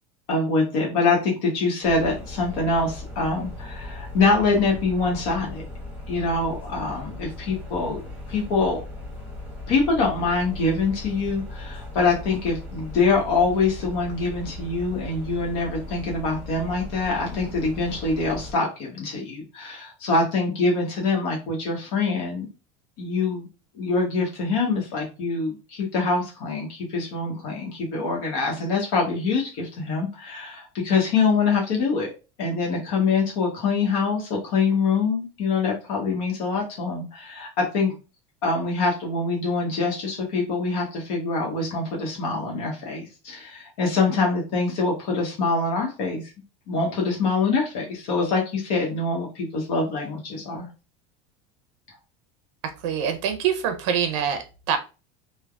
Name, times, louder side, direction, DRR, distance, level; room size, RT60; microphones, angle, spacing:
voice 1, 0.3-5.6 6.1-8.0 8.3-8.8 9.7-22.5 23.0-23.5 23.7-32.1 32.4-37.9 38.4-46.3 46.7-50.7, left 4 dB, 65° left, -1 dB, 1.0 m, -24 dB
sound 1, 1.8-18.5, left 2 dB, 10° right, 0.9 m, -38 dB
voice 2, 52.6-54.8, right 8 dB, 85° right, 7 dB, 0.6 m, -25 dB
3.3 x 2.1 x 2.3 m, 0.31 s
supercardioid pair, 150°, 16 cm